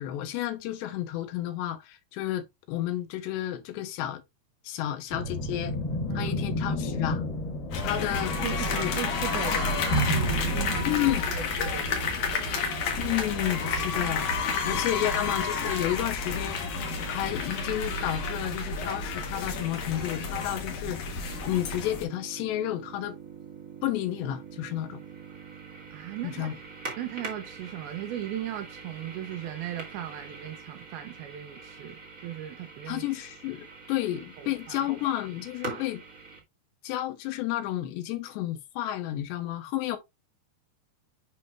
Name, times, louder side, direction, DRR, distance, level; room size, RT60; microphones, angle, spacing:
voice 1, 0.0-4.2 4.6-5.8 6.1-7.3 7.8-9.0 10.8-11.3 13.0-16.6 17.1-23.2 23.8-25.0 26.2-26.5 32.9-36.0 36.8-40.0, left 13 dB, 90° left, 3.1 m, -31 dB
sound 1, 5.1-11.2, left 3 dB, 40° left, 1.4 m, -33 dB
sound 2, 7.7-22.0, left 3 dB, 60° left, 2.5 m, -30 dB
voice 2, 8.4-11.0 11.3-12.8 14.7-14.8 25.9-26.5 27.0-33.1 34.4-34.9, right 11 dB, 80° right, 2.2 m, -37 dB
sound 3, 21.3-36.4, right 4 dB, 60° right, 0.8 m, -44 dB
7.8 x 5.4 x 2.5 m
omnidirectional pair, 4.9 m